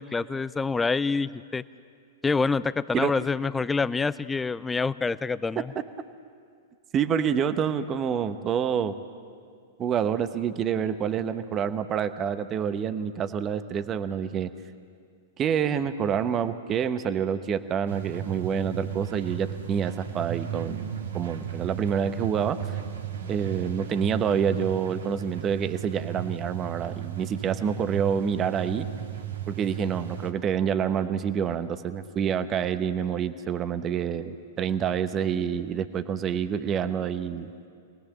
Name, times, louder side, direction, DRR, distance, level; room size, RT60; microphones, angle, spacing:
voice 1, 0.0-1.6 2.2-5.7, left 4 dB, 10° left, 17 dB, 0.5 m, -26 dB
voice 2, 6.9-9.0 9.8-14.5 15.4-20.9 21.1-22.8 23.3-28.9 29.5-37.5, right 7 dB, 30° right, 11 dB, 1.0 m, -27 dB
sound 1, 17.9-30.3, right 9 dB, 70° right, 1.8 m, -35 dB
26.0 x 19.5 x 7.3 m, 2.1 s
figure-of-eight pair, 100°, 0 cm